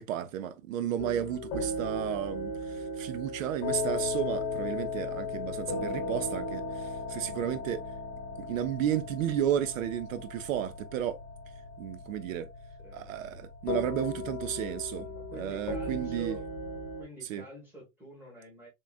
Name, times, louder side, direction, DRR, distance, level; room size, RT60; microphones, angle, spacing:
voice 1, 0.0-7.8 8.4-11.2 11.8-12.5 12.9-15.1 15.4-16.4 17.3-17.4, right 10 dB, 70° right, 0.6 m, -33 dB
sound 1, 1.0-17.0, left 2 dB, 20° left, 1.0 m, -36 dB
voice 2, 12.8-13.1 15.0-16.5 17.0-18.7, right 1 dB, 5° right, 1.4 m, -47 dB
3.8 x 3.6 x 2.4 m
supercardioid pair, 180°, 41 cm